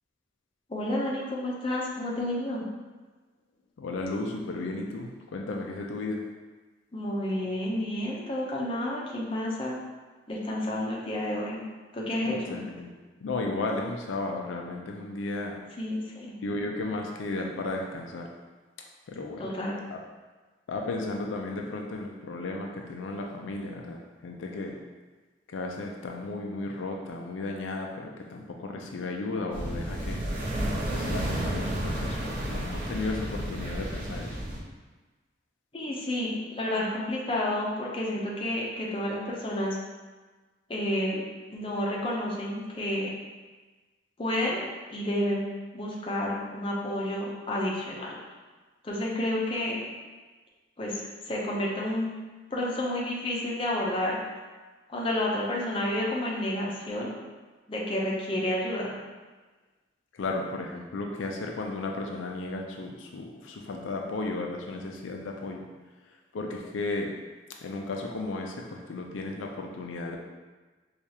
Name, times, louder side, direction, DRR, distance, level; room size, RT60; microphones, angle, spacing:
voice 1, 0.7-2.6 6.9-9.8 10.3-11.6 11.9-12.6 15.8-16.3 19.4-19.8 35.7-39.8 40.7-41.2 41.5-43.1 44.2-44.6 44.9-48.2 48.8-49.9 50.8-52.2 52.5-54.2 54.9-57.1 57.7-59.0, left 1 dB, 30° left, -4 dB, 0.6 m, -30 dB
voice 2, 3.8-6.2 12.2-12.9 13.2-15.6 16.4-18.3 19.1-19.5 19.9-20.0 20.7-24.8 25.5-30.2 30.9-34.4 60.2-65.6 66.3-67.1 67.6-70.2, left 2 dB, 85° left, 1 dB, 0.4 m, -34 dB
sound 1, 29.5-34.6, right 1 dB, 45° right, 0.8 m, -31 dB
4.6 x 2.4 x 2.8 m, 1.3 s
head